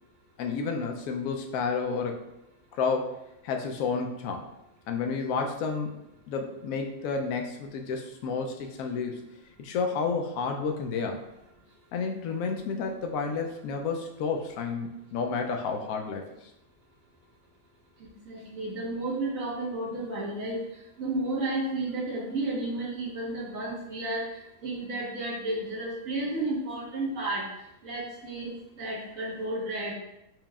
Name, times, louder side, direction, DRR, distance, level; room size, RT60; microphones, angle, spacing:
voice 1, 0.4-2.2 2.8-3.2 3.4-4.4 4.9-5.9 6.3-9.3 9.6-11.2 11.9-16.5, left 5 dB, 75° left, 3 dB, 1.0 m, -31 dB
voice 2, 18.0-20.6 21.0-27.4 27.8-28.5 28.8-29.9, right 2 dB, 65° right, -5 dB, 1.5 m, -32 dB
4.5 x 2.9 x 2.3 m, 0.87 s
omnidirectional pair, 1.5 m